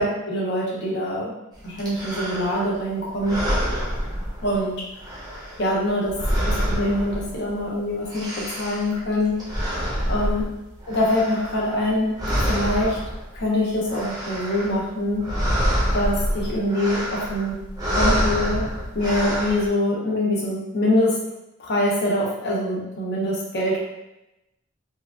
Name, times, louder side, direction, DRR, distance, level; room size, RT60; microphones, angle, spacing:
voice 1, 0.0-1.3 1.6-3.4 4.4-4.7 5.6-6.2 6.4-9.4 10.1-10.4 10.9-12.1 12.5-13.0 13.3-15.3 15.9-17.6 17.9-18.7 18.9-21.2 21.6-23.8, left 1 dB, 50° left, -4 dB, 0.7 m, -24 dB
sound 1, 1.8-2.8 3.2-4.7 5.0-7.6 7.9-11.9 12.1-13.4 13.7-14.8 15.1-19.7, equal, 20° right, 0.7 m, -27 dB
2.7 x 2.4 x 2.4 m, 0.92 s
head